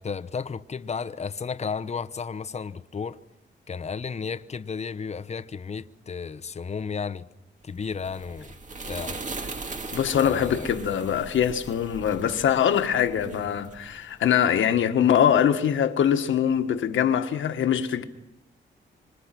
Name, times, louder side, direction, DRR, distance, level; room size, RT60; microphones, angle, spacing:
voice 1, 0.0-3.2 3.7-7.3 7.6-8.5 8.9-9.2 10.1-10.7, left 5 dB, 35° left, 0.9 m, -33 dB
sound 1, 7.7-14.4, right 3 dB, 40° right, 2.3 m, -39 dB
voice 2, 9.9-18.0, left 9 dB, 85° left, 1.7 m, -23 dB
26.0 x 25.0 x 6.0 m
cardioid pair, 85°, 20 cm